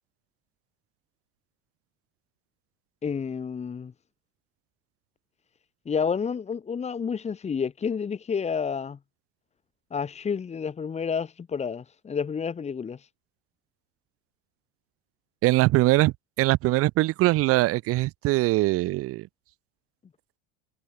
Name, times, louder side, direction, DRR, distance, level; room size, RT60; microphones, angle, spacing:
voice 1, 3.0-3.9 5.8-9.0 9.9-13.1, left 6 dB, 20° left, 3.0 m, -30 dB
voice 2, 15.4-19.3, right 19 dB, 45° right, 0.9 m, -22 dB
cardioid pair, 140°, 31 cm